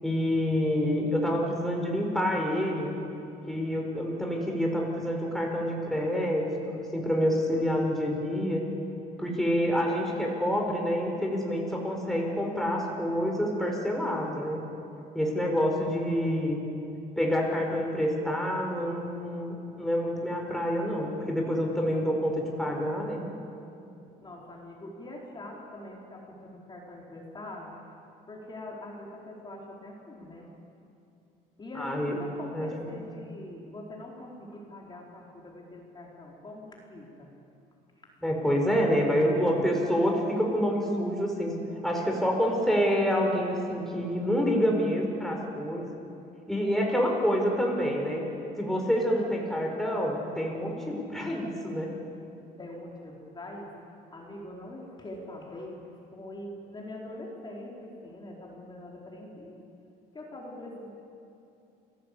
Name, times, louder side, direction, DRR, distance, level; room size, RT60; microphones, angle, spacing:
voice 1, 0.0-2.9 3.5-8.7 9.2-14.6 15.1-16.6 17.2-23.2 31.8-32.2 32.5-33.1 38.2-45.9 46.5-48.2 48.5-51.9, equal, ahead, 0 dB, 4.9 m, -27 dB
voice 2, 24.2-27.8 28.3-30.5 31.6-37.3 52.6-53.7 54.1-59.6 60.1-60.9, left 1 dB, 25° left, -2 dB, 4.5 m, -43 dB
29.0 x 17.0 x 8.6 m, 2.7 s
cardioid pair, 110°, 17 cm